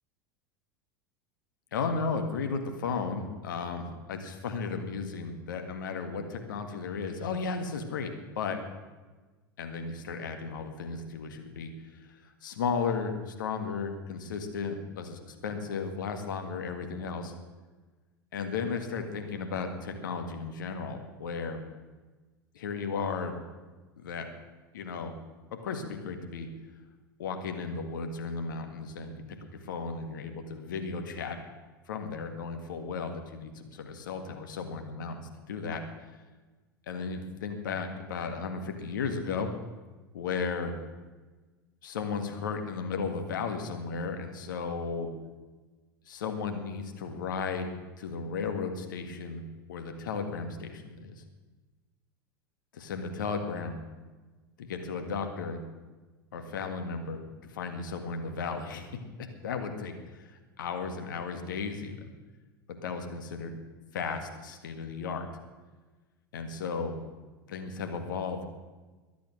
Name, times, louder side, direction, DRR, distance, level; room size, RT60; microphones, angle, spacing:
voice 1, 1.7-8.6 9.6-17.3 18.3-21.6 22.5-23.3 24.0-24.3 24.7-25.2 25.6-26.5 27.2-29.2 29.6-31.4 31.9-35.8 36.9-39.5 40.1-40.7 41.8-45.1 46.1-47.7 48.0-49.4 49.7-51.2 52.7-53.8 54.6-55.6 56.3-57.2 57.5-62.1 62.8-63.5 63.9-65.3 66.3-67.0 67.5-68.5, left 5 dB, 65° left, 6 dB, 1.8 m, -35 dB
23.0 x 8.4 x 6.3 m, 1.3 s
figure-of-eight pair, 80°, 11 cm